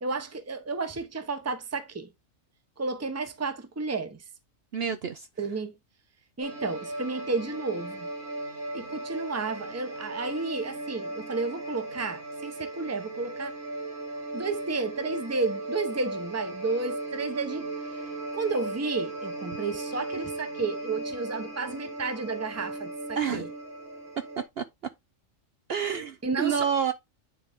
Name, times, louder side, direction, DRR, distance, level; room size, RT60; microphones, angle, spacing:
voice 1, 0.0-2.1 2.8-4.2 5.4-5.7 6.4-8.1 8.7-13.5 14.3-17.7 18.3-22.9 23.3-23.5 26.2-26.6, right 3 dB, 15° right, 0.7 m, -32 dB
voice 2, 4.7-5.6 23.1-23.5 24.6-24.7 25.7-26.9, right 7 dB, 60° right, 0.8 m, -29 dB
sound 1, 6.4-24.5, right 2 dB, 90° right, 4.9 m, -37 dB
9.4 x 3.9 x 3.5 m
omnidirectional pair, 1.4 m